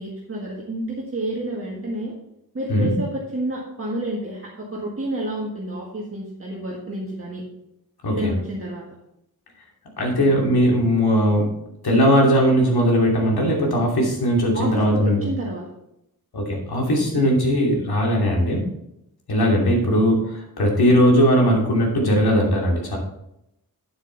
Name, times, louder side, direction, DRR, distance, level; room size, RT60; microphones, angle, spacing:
voice 1, 0.0-2.1 2.5-7.4 8.1-8.8 14.5-15.6, right 1 dB, 35° right, -4 dB, 1.8 m, -30 dB
voice 2, 10.0-11.5 11.8-15.3 16.3-18.7 19.3-23.0, equal, 80° left, -1 dB, 2.8 m, -19 dB
9.3 x 7.9 x 4.0 m, 0.81 s
wide cardioid pair, 120°, 37 cm